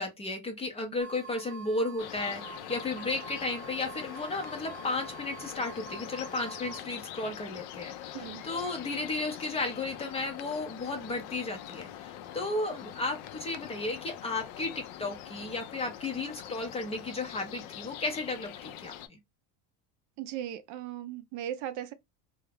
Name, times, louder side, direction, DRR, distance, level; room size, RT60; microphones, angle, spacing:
voice 1, 0.0-19.2, left 2 dB, 15° left, 0.4 m, -34 dB
sound 1, 1.0-6.8, right 5 dB, 25° right, 0.8 m, -46 dB
sound 2, 2.0-19.1, left 11 dB, 70° left, 0.5 m, -44 dB
voice 2, 20.2-21.9, right 11 dB, 55° right, 0.4 m, -37 dB
2.3 x 2.0 x 3.1 m
cardioid pair, 150°, 37 cm